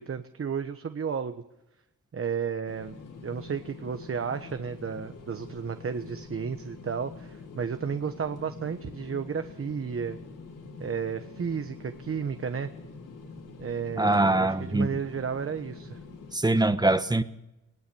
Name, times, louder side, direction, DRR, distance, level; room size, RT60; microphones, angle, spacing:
voice 1, 0.0-1.4 2.1-3.0 3.2-10.2 10.8-12.7 13.6-16.0, right 6 dB, 45° right, 9 dB, 1.3 m, -33 dB
sound 1, 2.7-16.4, left 4 dB, 75° left, 5.0 m, -45 dB
voice 2, 14.0-14.9 16.3-17.2, right 2 dB, 15° right, 11 dB, 1.3 m, -23 dB
20.5 x 19.0 x 7.0 m, 0.96 s
cardioid pair, 85°, 32 cm